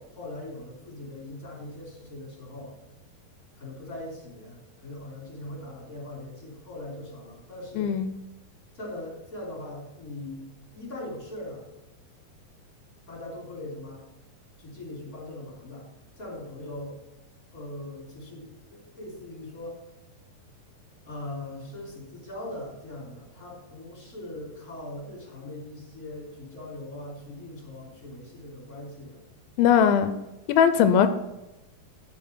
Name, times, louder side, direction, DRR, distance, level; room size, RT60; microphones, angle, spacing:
voice 1, 0.0-2.7 3.6-7.9 8.7-11.7 13.1-14.1 14.6-15.9 16.2-17.0 17.5-19.8 21.0-29.2, left 1 dB, 25° left, -3 dB, 3.4 m, -40 dB
voice 2, 7.8-8.1 29.6-30.1 30.5-31.1, left 8 dB, 90° left, 11 dB, 2.4 m, -19 dB
12.0 x 5.3 x 4.5 m, 0.95 s
omnidirectional pair, 4.2 m